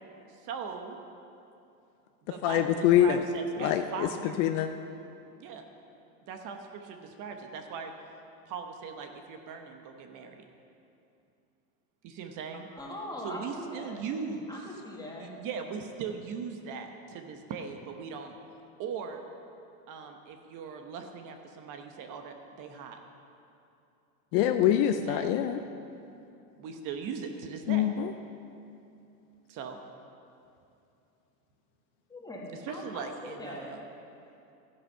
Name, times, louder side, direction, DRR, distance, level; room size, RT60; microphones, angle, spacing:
voice 1, 0.4-1.0 2.2-4.4 5.4-5.6 6.2-7.9 8.5-10.4 12.0-12.7 13.2-14.7 15.2-18.3 18.8-19.2 19.9-23.0 24.9-25.3 26.6-27.9 29.5-29.8 32.6-33.8, right 6 dB, 40° right, 5 dB, 1.1 m, -39 dB
voice 2, 2.4-3.2 3.6-4.1 4.4-4.7 24.3-25.6 27.7-28.1, left 11 dB, 50° left, 8 dB, 0.7 m, -24 dB
voice 3, 12.5-14.1 14.5-15.3 32.1-33.8, left 1 dB, 10° left, -2 dB, 2.1 m, -41 dB
13.0 x 10.0 x 5.6 m, 2.7 s
supercardioid pair, 125°, 46 cm